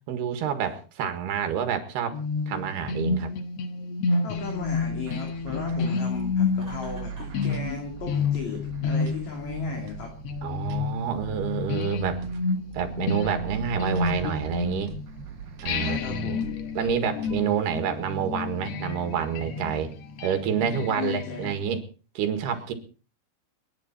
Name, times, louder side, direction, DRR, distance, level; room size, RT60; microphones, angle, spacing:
voice 1, 0.1-2.1 2.5-3.3 10.4-12.2 12.7-14.9 15.6-16.5 16.8-19.9 20.2-21.8 22.2-22.7, right 8 dB, 80° right, 8 dB, 3.8 m, -28 dB
sound 1, 2.1-15.2 15.7-21.6, left 4 dB, 65° left, 1.6 m, -30 dB
voice 2, 4.2-10.1 15.8-16.5 20.7-21.6, left 5 dB, 50° left, 2 dB, 3.8 m, -36 dB
sound 2, 4.4-17.4, right 8 dB, 55° right, 2.3 m, -42 dB
Laughter, 6.5-7.5, right 1 dB, 5° right, 7.8 m, -48 dB
29.5 x 9.9 x 4.3 m, 0.37 s
omnidirectional pair, 4.6 m